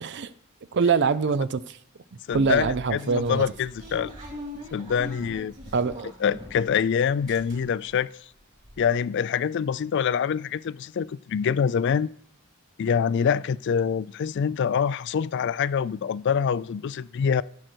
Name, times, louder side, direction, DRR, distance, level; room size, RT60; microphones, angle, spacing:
voice 1, 0.0-0.3 0.7-1.8 2.3-3.4 5.7-6.1, right 5 dB, 55° right, 0.5 m, -24 dB
voice 2, 2.3-4.1 4.7-5.5 6.2-8.1 8.8-12.1 12.8-17.4, left 7 dB, 55° left, 0.3 m, -25 dB
sound 1, 2.3-6.8 7.1-7.9 8.3-8.4 8.6-8.8, left 1 dB, 35° right, 3.3 m, -41 dB
15.5 x 6.4 x 4.5 m
head